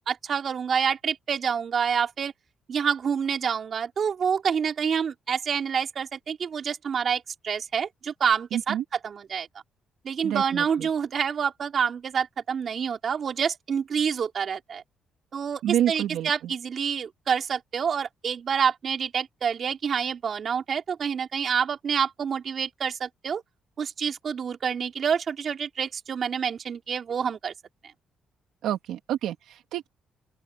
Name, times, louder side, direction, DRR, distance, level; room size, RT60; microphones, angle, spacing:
voice 1, 0.0-2.3 2.7-8.8 9.0-9.5 10.0-14.8 15.3-23.4 23.8-27.5, right 7 dB, 50° right, 3.5 m, -27 dB
voice 2, 8.5-8.8 10.2-10.9 15.6-16.5 28.6-29.9, right 11 dB, 85° right, 2.3 m, -28 dB
open air
cardioid pair, 90°, 0 cm